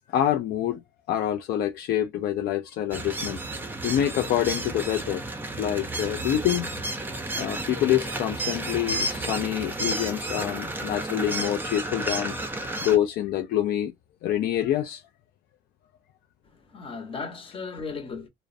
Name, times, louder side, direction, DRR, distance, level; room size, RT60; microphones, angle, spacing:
voice 1, 0.1-0.8 1.1-3.4 3.8-5.2 5.6-6.7 7.4-12.4 12.8-13.9 14.2-15.0, left 11 dB, 65° left, 0.4 m, -26 dB
sound 1, 2.9-13.0, right 2 dB, 10° right, 0.5 m, -32 dB
voice 2, 16.4-18.3, left 4 dB, 30° left, 0.8 m, -36 dB
2.3 x 2.1 x 2.5 m
cardioid pair, 110°, 17 cm